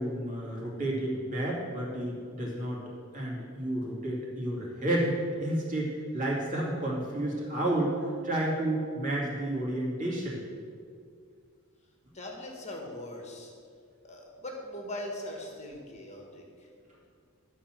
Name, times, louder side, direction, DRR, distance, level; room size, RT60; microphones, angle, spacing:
voice 1, 0.0-2.8 3.1-10.4, right 1 dB, 35° right, -4 dB, 2.5 m, -31 dB
voice 2, 12.1-13.5 14.0-16.7, left 1 dB, 35° left, 0 dB, 1.6 m, -40 dB
12.0 x 4.4 x 7.5 m, 2.2 s
head